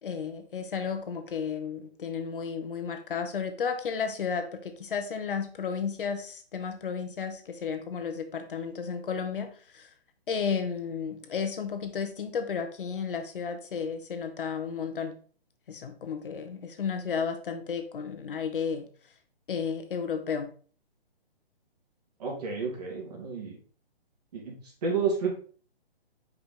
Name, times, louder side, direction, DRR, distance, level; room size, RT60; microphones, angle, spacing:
voice 1, 0.0-9.9 10.3-15.2 15.7-18.9 19.5-20.5, left 6 dB, 55° left, 7 dB, 1.2 m, -33 dB
voice 2, 22.2-23.6 24.3-25.3, right 5 dB, 40° right, -1 dB, 2.7 m, -31 dB
5.6 x 5.1 x 3.8 m, 0.42 s
hypercardioid pair, 155°, 31 cm